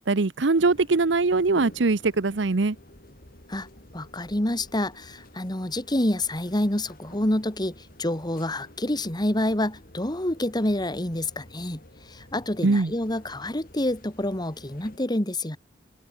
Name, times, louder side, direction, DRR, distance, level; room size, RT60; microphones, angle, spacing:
voice 1, 0.0-2.8 12.6-12.9, right 3 dB, 80° right, 0.8 m, -22 dB
sound 1, 0.6-15.0, left 1 dB, 55° left, 6.0 m, -50 dB
voice 2, 3.9-11.8 12.1-15.6, left 1 dB, 25° left, 2.2 m, -27 dB
head